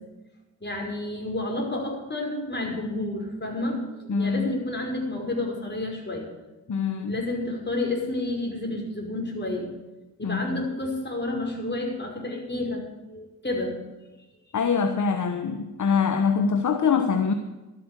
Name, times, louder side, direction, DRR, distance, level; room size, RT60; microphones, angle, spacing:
voice 1, 0.6-6.3 7.1-9.7 10.2-13.8, left 2 dB, 30° left, 0 dB, 5.3 m, -30 dB
voice 2, 4.1-4.5 6.7-7.2 10.2-10.7 14.5-17.3, left 6 dB, 50° left, 7 dB, 1.2 m, -24 dB
13.0 x 8.9 x 8.2 m, 1.1 s
supercardioid pair, 50°, 37 cm